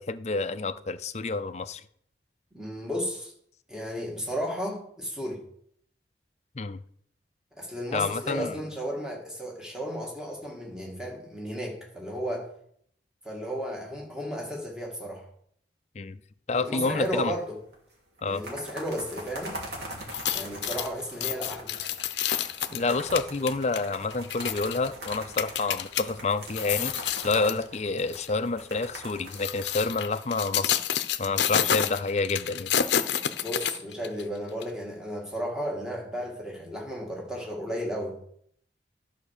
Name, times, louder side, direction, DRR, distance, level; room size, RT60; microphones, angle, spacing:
voice 1, 0.0-1.8 6.6-6.8 7.9-8.5 16.0-16.2 16.5-17.4 18.2-18.4 22.7-26.9 27.2-30.8 31.2-32.7, left 3 dB, 40° left, 12 dB, 0.5 m, -28 dB
voice 2, 2.5-3.3 3.7-5.4 7.6-12.5 13.2-15.2 16.5-17.6 18.2-19.6 20.3-21.8 33.4-38.2, equal, 5° right, -2 dB, 2.0 m, -34 dB
sound 1, 17.1-17.5 17.7-17.8 18.2-30.7, right 1 dB, 70° right, 2.8 m, -42 dB
sound 2, 20.0-26.0 26.5-27.6 28.1-28.3 29.1-34.2 34.6-34.7, left 9 dB, 80° left, 0.6 m, -29 dB
11.5 x 5.8 x 6.6 m, 0.67 s
head